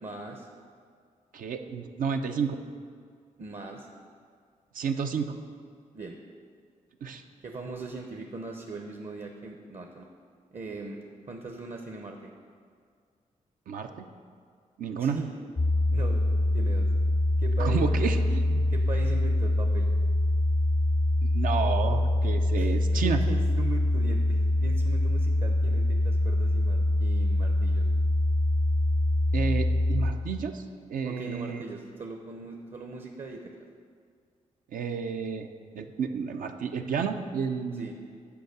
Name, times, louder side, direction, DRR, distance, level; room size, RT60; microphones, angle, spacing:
voice 1, 0.0-0.5 3.4-3.9 5.9-6.2 7.4-10.1 10.5-11.0 11.3-12.3 15.0-15.4 15.9-16.2 16.5-16.9 17.4-18.2 18.7-19.9 22.6-22.7 23.0-27.9 31.0-33.7 37.7-37.9, right 3 dB, 50° right, 3 dB, 0.8 m, -39 dB
voice 2, 1.3-2.6 4.7-5.4 7.0-7.2 13.7-14.1 14.8-15.2 17.6-18.6 21.2-23.2 29.3-30.6 30.9-31.6 34.7-35.5 35.7-37.9, right 6 dB, 75° right, 6 dB, 0.6 m, -31 dB
sound 1, 15.6-30.1, left 1 dB, 25° left, 0.4 m, -24 dB
6.9 x 4.7 x 6.6 m, 2.1 s
cardioid pair, 55°, 14 cm